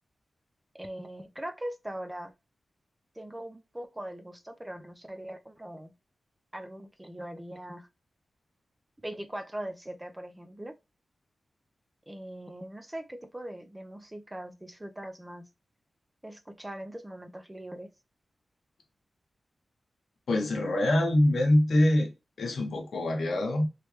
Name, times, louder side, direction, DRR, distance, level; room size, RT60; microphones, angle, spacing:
voice 1, 0.7-2.3 3.2-5.9 6.5-7.9 9.0-10.7 12.1-15.4 16.2-17.9, right 1 dB, 10° right, 0.4 m, -41 dB
voice 2, 20.3-22.1 22.4-23.6, left 1 dB, 70° left, 0.9 m, -24 dB
3.1 x 3.0 x 3.0 m
wide cardioid pair, 170°, 0 cm